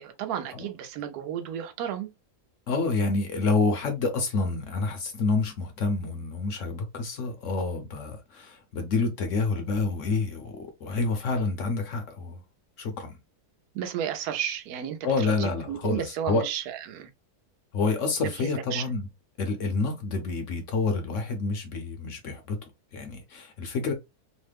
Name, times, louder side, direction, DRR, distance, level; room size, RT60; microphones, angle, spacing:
voice 1, 0.0-2.1 13.7-17.1 18.2-18.8, right 9 dB, 75° right, 1.1 m, -33 dB
voice 2, 2.7-12.4 12.8-13.2 15.0-16.4 17.7-19.1 19.4-23.9, left 3 dB, 60° left, 0.9 m, -28 dB
3.1 x 2.1 x 3.3 m
omnidirectional pair, 1.7 m